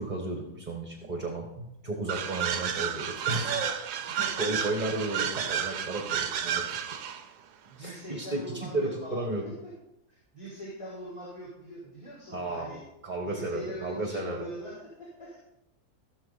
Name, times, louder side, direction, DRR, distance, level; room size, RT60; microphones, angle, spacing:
voice 1, 0.0-3.9 4.4-6.6 7.8-9.5 12.3-12.8 13.0-14.5, right 2 dB, 30° right, 2 dB, 1.3 m, -33 dB
sound 1, 2.1-7.2, right 8 dB, 85° right, 1.3 m, -31 dB
voice 2, 4.1-4.7 6.4-6.7 7.7-9.2 10.1-12.8 13.2-15.4, equal, 20° left, -8 dB, 4.0 m, -42 dB
16.0 x 6.6 x 4.0 m, 0.87 s
omnidirectional pair, 1.7 m